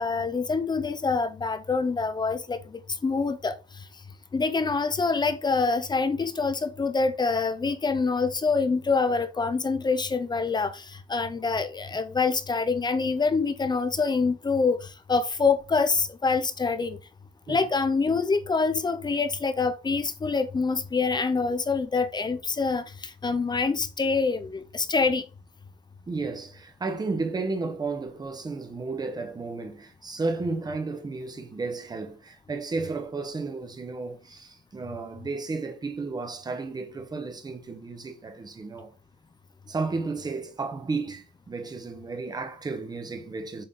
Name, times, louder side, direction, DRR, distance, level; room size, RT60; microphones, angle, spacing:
voice 1, 0.0-3.9 4.3-17.0 17.5-25.2, left 4 dB, 20° left, 0.6 m, -26 dB
voice 2, 26.1-38.9 39.7-43.6, right 3 dB, 20° right, 0.9 m, -33 dB
7.6 x 3.7 x 4.0 m
cardioid pair, 170°, 21 cm